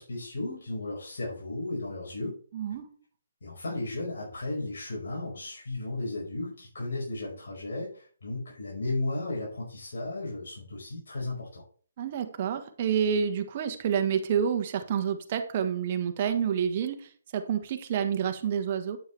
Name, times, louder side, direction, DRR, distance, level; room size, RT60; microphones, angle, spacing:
voice 1, 0.0-2.4 3.4-11.6, left 2 dB, 70° left, -4 dB, 5.2 m, -34 dB
voice 2, 2.5-2.9 12.0-17.0 17.3-19.0, right 8 dB, 40° right, 7 dB, 1.5 m, -28 dB
9.3 x 8.7 x 3.4 m, 0.43 s
hypercardioid pair, 150°, 0 cm